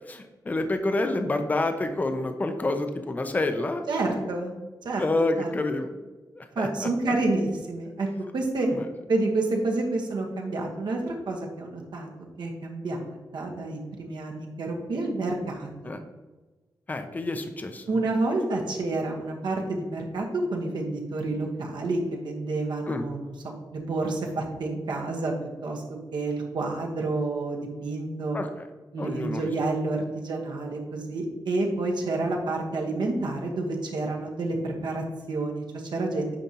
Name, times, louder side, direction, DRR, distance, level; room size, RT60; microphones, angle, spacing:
voice 1, 0.1-3.8 5.0-6.0 6.3-7.1 8.6-8.8 15.8-16.0 16.9-17.8 22.9-23.0 28.3-28.5 29.0-29.5, left 2 dB, 20° left, 7 dB, 0.5 m, -28 dB
voice 2, 3.9-4.5 4.8-5.0 5.4-5.5 6.5-8.1 8.3-8.7 9.1-12.1 12.4-16.0 17.9-25.3 25.6-25.8 26.1-28.4 28.9-36.3, right 2 dB, 75° right, 1 dB, 1.2 m, -29 dB
9.0 x 5.0 x 2.9 m, 1.2 s
wide cardioid pair, 175°, 8 cm